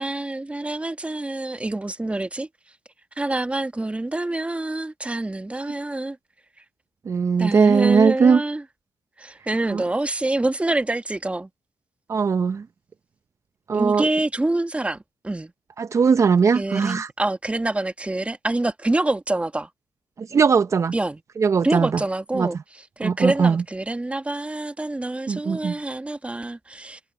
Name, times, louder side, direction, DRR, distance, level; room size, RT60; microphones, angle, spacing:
voice 1, 0.0-2.5 3.2-6.2 7.4-8.6 9.2-11.5 13.7-15.5 16.5-19.7 20.9-21.2 21.6-27.0, right 2 dB, 20° right, 1.4 m, -26 dB
voice 2, 7.1-8.4 9.7-9.8 12.1-12.6 13.7-14.1 15.8-17.1 20.2-20.9 21.4-22.0 22.3-22.5 23.0-23.6 25.3-25.7, right 5 dB, 50° right, 0.6 m, -19 dB
cardioid pair, 55°, 6 cm